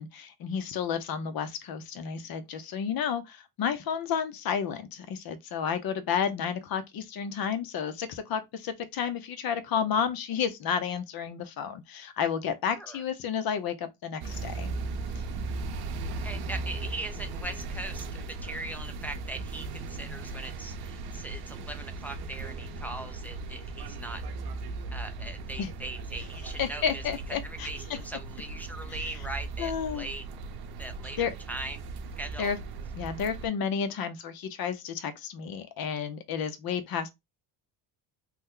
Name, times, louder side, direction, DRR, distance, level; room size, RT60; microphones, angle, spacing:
voice 1, 0.0-14.7 25.6-25.7 26.6-27.7 29.6-30.1 31.2-31.3 32.4-32.6 32.9-37.1, left 7 dB, 55° left, 0.7 m, -31 dB
sound 1, 14.2-33.5, right 3 dB, 60° right, 0.7 m, -37 dB
voice 2, 16.2-24.2 24.9-27.0 27.4-30.2 30.8-31.8 32.2-32.5, right 2 dB, 5° left, 0.3 m, -40 dB
3.0 x 2.1 x 3.6 m
cardioid pair, 115°, 43 cm